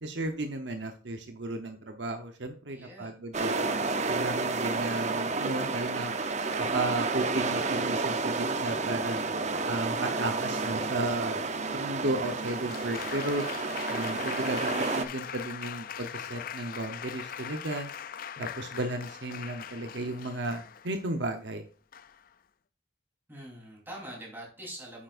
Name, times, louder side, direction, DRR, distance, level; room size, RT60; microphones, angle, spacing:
voice 1, 0.0-3.6 4.1-6.1 6.6-9.2 9.7-11.4 11.7-13.4 13.9-17.9 18.4-21.6, right 2 dB, 70° right, 6 dB, 1.0 m, -34 dB
voice 2, 2.7-3.9 23.3-25.0, right 1 dB, 10° right, -2 dB, 3.8 m, -45 dB
sound 1, 3.3-15.0, right 3 dB, 40° right, 0.8 m, -30 dB
Applause, 12.2-21.1 21.9-22.3, left 8 dB, 50° left, 0.4 m, -41 dB
9.2 x 8.6 x 2.6 m, 0.39 s
head